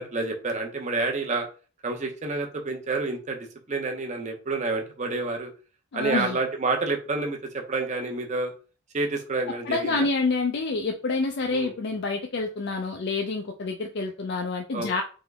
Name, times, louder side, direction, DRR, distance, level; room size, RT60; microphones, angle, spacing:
voice 1, 0.0-1.5 1.8-5.5 5.9-8.5 8.9-10.1 11.5-11.7 14.7-15.0, right 3 dB, 35° right, 0.7 m, -29 dB
voice 2, 5.9-6.4 9.7-15.0, left 3 dB, 50° left, 0.4 m, -27 dB
3.6 x 3.0 x 3.4 m
head